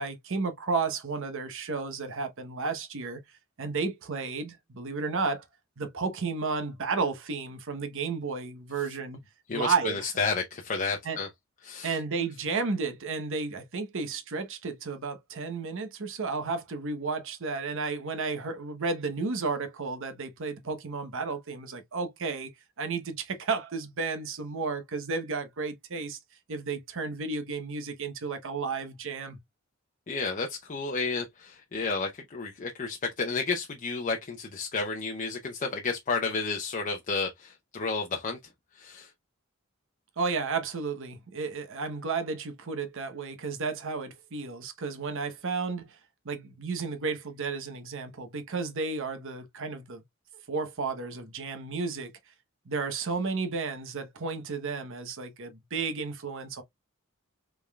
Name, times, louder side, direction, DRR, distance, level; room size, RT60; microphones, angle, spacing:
voice 1, 0.0-3.2 3.6-5.4 5.8-9.2 9.5-10.1 11.0-11.2 11.8-22.5 22.8-26.2 26.5-29.4 40.2-46.0 46.2-50.0 50.5-52.1 52.7-56.6, right 4 dB, 65° right, 0.9 m, -32 dB
voice 2, 9.5-11.3 11.6-12.0 30.1-38.4 38.8-39.1, left 4 dB, 35° left, 0.6 m, -31 dB
5.2 x 3.6 x 2.3 m
head